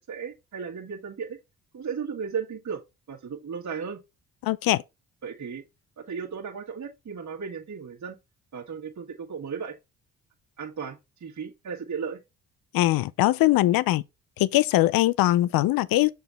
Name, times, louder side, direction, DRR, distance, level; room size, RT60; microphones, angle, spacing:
voice 1, 0.1-1.4 1.7-2.8 3.1-4.0 5.2-5.6 6.0-8.2 8.5-9.7 10.6-12.2, right 6 dB, 50° right, 1.9 m, -35 dB
voice 2, 4.4-4.8 12.7-14.0 14.4-16.1, left 16 dB, 65° left, 0.6 m, -21 dB
6.9 x 3.9 x 4.1 m
supercardioid pair, 55°, 37 cm